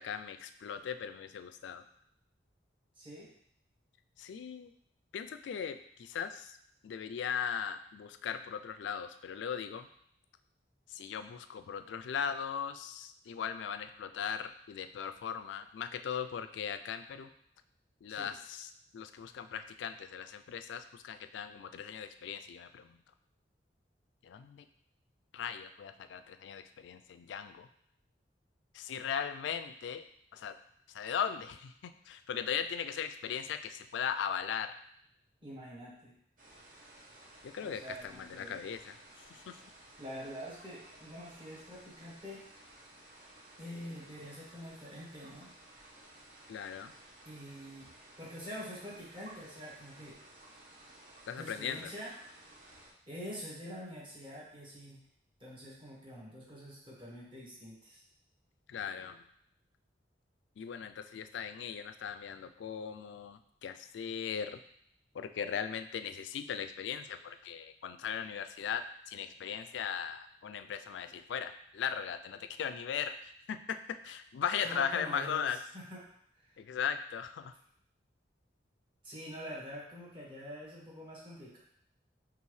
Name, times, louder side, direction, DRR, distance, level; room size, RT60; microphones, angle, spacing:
voice 1, 0.0-1.8 4.2-4.7 5.1-6.6 6.8-9.9 10.9-17.3 18.0-23.0 24.2-24.7 25.3-27.7 28.7-30.1 30.3-30.6 30.9-34.7 37.4-39.0 39.3-39.6 46.5-46.9 51.3-51.9 58.7-59.2 60.6-64.6 65.1-73.6 74.0-75.6 76.6-77.5, left 7 dB, 80° left, 10 dB, 0.3 m, -38 dB
voice 2, 3.0-3.3 18.1-18.3 35.4-36.1 37.6-38.6 40.0-42.4 43.6-45.5 47.2-47.9 48.2-50.2 51.4-52.1 53.1-55.0 55.4-58.0 74.6-76.0 76.3-76.5 79.0-81.6, equal, 30° right, -6 dB, 1.5 m, -46 dB
sound 1, 36.4-52.9, right 1 dB, 50° right, 1.0 m, -56 dB
5.5 x 2.5 x 3.2 m, 0.67 s
head